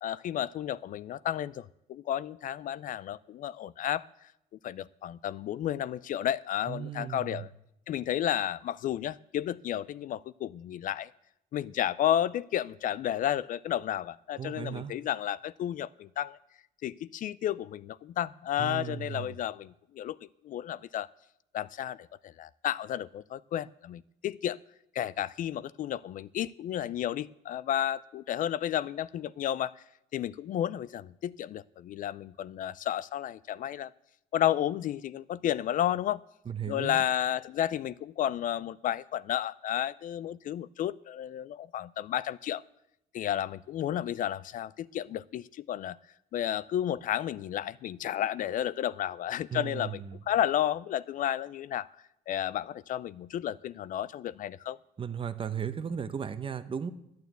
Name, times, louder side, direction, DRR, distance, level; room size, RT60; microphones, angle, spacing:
voice 1, 0.0-4.1 4.6-7.5 7.9-11.1 11.5-16.4 16.8-20.2 20.4-21.1 21.5-24.6 24.9-29.8 30.1-33.9 34.3-36.2 36.7-42.6 43.1-46.0 46.3-50.0 50.3-51.9 52.3-54.8, left 11 dB, 55° left, 19 dB, 0.4 m, -32 dB
voice 2, 6.7-7.4 14.4-14.9 18.6-19.3 36.5-37.0 49.5-50.2 55.0-56.9, right 8 dB, 30° right, 11 dB, 0.9 m, -36 dB
11.5 x 9.3 x 8.0 m, 0.81 s
cardioid pair, 110°, 17 cm